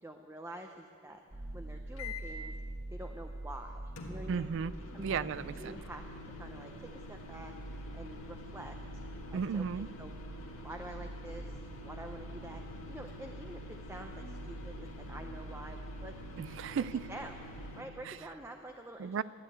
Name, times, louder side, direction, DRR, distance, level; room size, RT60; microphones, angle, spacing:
voice 1, 0.0-2.5 2.9-4.5 4.9-6.0 6.3-7.5 7.9-9.0 9.3-10.1 10.6-16.2 16.7-19.2, right 1 dB, 10° right, 4 dB, 0.6 m, -47 dB
sound 1, 1.3-17.7, right 1 dB, 30° right, 1.3 m, -46 dB
sound 2, 2.0-2.4 4.0-17.8, left 2 dB, 80° left, 1.7 m, -48 dB
voice 2, 4.3-5.7 9.3-9.9 16.4-17.1 18.0-18.2 19.0-19.2, right 6 dB, 60° right, 18 dB, 0.3 m, -35 dB
13.0 x 11.0 x 8.5 m, 2.7 s
head